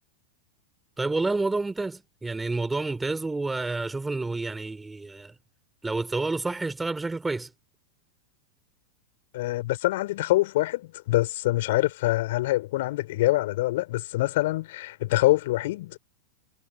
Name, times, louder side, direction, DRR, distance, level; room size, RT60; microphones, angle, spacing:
voice 1, 1.0-5.3 5.8-7.5, right 3 dB, 10° right, 3.6 m, -29 dB
voice 2, 9.3-16.0, left 17 dB, 55° left, 3.8 m, -25 dB
figure-of-eight pair, 90°, 0 cm